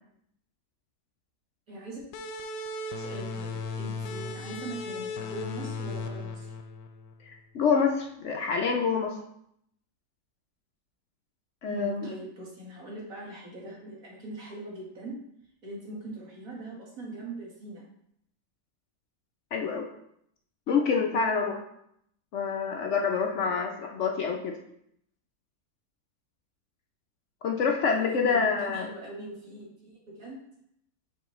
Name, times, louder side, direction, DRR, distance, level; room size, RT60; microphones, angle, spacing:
voice 1, 1.7-2.0 3.0-6.5 11.7-15.1 15.6-17.8 23.0-23.4 27.8-30.4, right 2 dB, 55° right, -3 dB, 1.9 m, -41 dB
sound 1, 2.1-7.4, left 3 dB, 90° left, 1.2 m, -36 dB
voice 2, 7.2-9.2 11.6-12.1 19.5-19.9 20.7-21.6 22.3-24.5 27.4-28.9, left 5 dB, 65° left, 2 dB, 0.8 m, -27 dB
7.1 x 4.4 x 3.1 m, 0.73 s
omnidirectional pair, 1.8 m